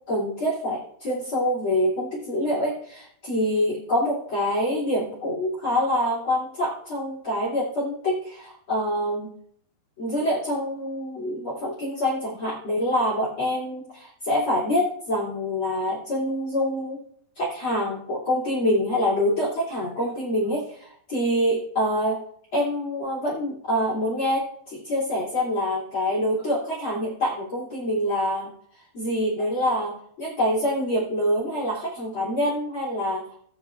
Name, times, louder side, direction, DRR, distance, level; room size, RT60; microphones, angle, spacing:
voice 1, 0.1-9.3 10.0-17.0 17.4-22.2 22.5-28.5 28.9-33.2, equal, 35° left, -5 dB, 3.2 m, -26 dB
17.5 x 9.3 x 2.6 m, 0.66 s
omnidirectional pair, 4.7 m